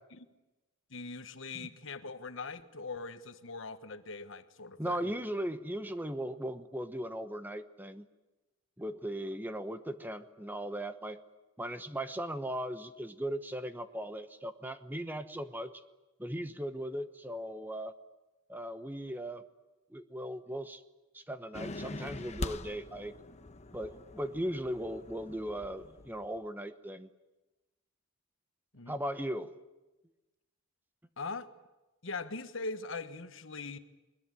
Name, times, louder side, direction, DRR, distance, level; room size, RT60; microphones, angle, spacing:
voice 1, 0.9-5.0 28.7-29.0 31.2-31.5 32.0-33.8, left 3 dB, 65° left, 10 dB, 1.4 m, -41 dB
voice 2, 4.8-8.1 8.8-11.2 11.6-15.7 16.2-17.9 18.5-19.4 19.9-20.8 21.1-23.2 23.7-27.1 28.9-29.6, equal, 10° right, 10 dB, 1.1 m, -38 dB
sound 1, 21.5-26.4, left 2 dB, 35° left, 1.0 m, -43 dB
22.0 x 21.5 x 9.9 m, 1.0 s
head